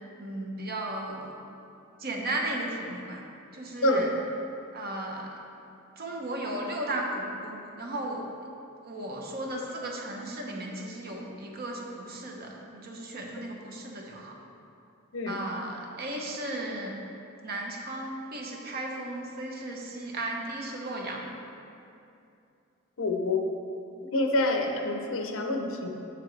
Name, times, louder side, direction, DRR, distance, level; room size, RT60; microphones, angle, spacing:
voice 1, 0.2-1.3 2.0-3.2 3.5-4.1 4.7-5.3 6.0-8.2 8.8-14.3 15.3-17.0 17.4-21.3, right 1 dB, 50° right, 0 dB, 0.9 m, -35 dB
voice 2, 23.0-23.4 24.1-25.9, left 2 dB, 75° left, 3 dB, 0.7 m, -27 dB
7.2 x 6.9 x 3.2 m, 2.6 s
head